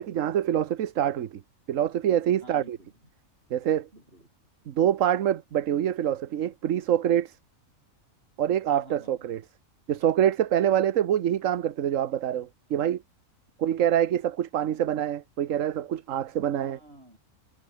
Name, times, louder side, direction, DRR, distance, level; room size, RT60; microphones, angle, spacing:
voice 1, 0.0-1.4 1.7-2.8 3.5-3.9 4.7-7.4 8.4-9.4 9.9-13.0 13.6-16.8, right 10 dB, 70° right, 1.2 m, -25 dB
voice 2, 2.4-3.1 3.9-4.3 8.7-9.3 16.5-17.2, right 1 dB, 45° right, 8.4 m, -51 dB
omnidirectional pair, 1.4 m